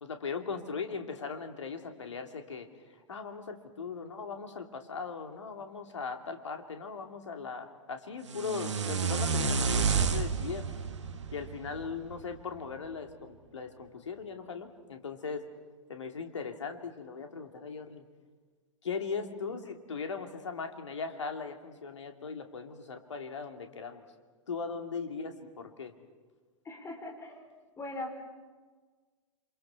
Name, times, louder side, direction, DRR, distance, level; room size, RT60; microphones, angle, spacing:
voice 1, 0.0-2.7 3.1-10.7 11.3-15.5 15.9-18.0 18.8-24.0 24.5-25.9, left 5 dB, 65° left, 5 dB, 2.7 m, -39 dB
sound 1, 8.3-12.4, right 5 dB, 65° right, 1.7 m, -30 dB
voice 2, 26.6-27.4 27.8-28.2, left 2 dB, 15° left, 3 dB, 4.9 m, -40 dB
28.0 x 27.0 x 5.9 m, 1.4 s
figure-of-eight pair, 100°, 16 cm